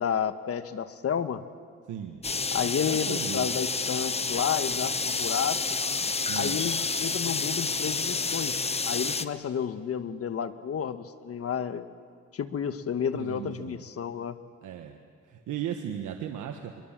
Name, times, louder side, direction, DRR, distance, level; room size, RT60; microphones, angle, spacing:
voice 1, 0.0-1.4 2.5-5.6 6.4-11.9 12.3-14.4, left 8 dB, 50° left, 10 dB, 1.3 m, -31 dB
voice 2, 1.9-2.2 2.6-3.5 6.3-6.7 13.1-13.8 14.6-15.0 15.3-16.8, right 10 dB, 80° right, 4 dB, 1.4 m, -36 dB
sound 1, 2.2-9.3, left 4 dB, 20° left, 0.9 m, -29 dB
23.5 x 22.0 x 7.5 m, 2.1 s
cardioid pair, 90°, 30 cm